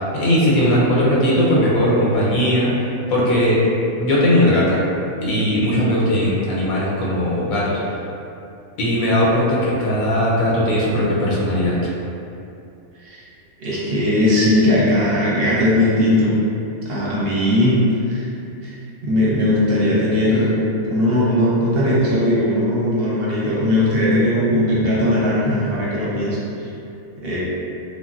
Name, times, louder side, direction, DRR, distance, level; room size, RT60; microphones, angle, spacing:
voice 1, 0.0-2.7 3.1-3.6 4.0-4.8 5.2-7.8 8.8-11.8, equal, 85° left, -5 dB, 1.0 m, -18 dB
voice 2, 13.6-16.4 16.8-17.8 18.1-18.3 18.6-18.8 19.0-20.6 20.8-26.4 27.2-27.4, left 1 dB, 55° right, -8 dB, 0.8 m, -18 dB
3.2 x 2.2 x 2.4 m, 2.7 s
omnidirectional pair, 1.4 m